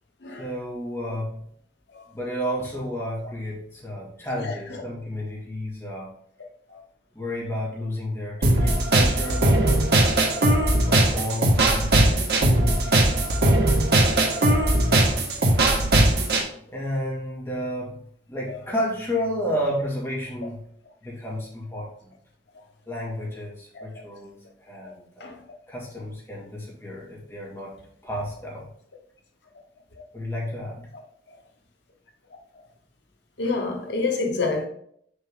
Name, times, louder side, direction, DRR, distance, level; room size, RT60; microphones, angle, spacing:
voice 1, 0.4-1.4 2.1-6.1 7.1-9.9 10.9-13.6 16.7-17.9 18.3-20.6 21.0-22.1 22.9-25.3 25.7-27.7 28.0-28.7 30.1-30.9, equal, 15° left, 2.2 m, -31 dB
voice 2, 4.3-4.8 6.7-6.8 9.6-9.8 12.9-13.0 14.5-14.7 18.5-18.6 23.7-24.0 24.8-24.9 25.2-25.4 31.3-31.4 32.5-32.6 33.4-34.7, left 3 dB, 85° left, 1.0 m, -29 dB
sound 1, 8.4-16.4, right 1 dB, 70° right, 1.5 m, -19 dB
6.7 x 4.3 x 3.7 m
head